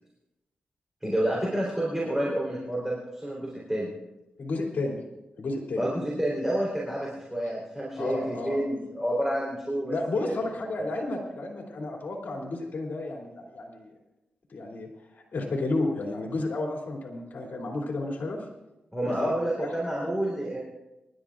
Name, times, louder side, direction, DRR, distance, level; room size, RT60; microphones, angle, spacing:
voice 1, 1.0-3.9 5.8-10.0 10.2-10.4 10.8-10.9 18.9-20.6, right 1 dB, 10° right, -4 dB, 3.8 m, -29 dB
voice 2, 4.4-5.0 5.4-5.9 8.0-8.6 9.9-13.9 14.5-18.4 19.1-19.3 19.6-19.7, left 2 dB, 70° left, -1 dB, 2.9 m, -32 dB
26.0 x 12.0 x 2.5 m, 0.99 s
wide cardioid pair, 90°, 3 cm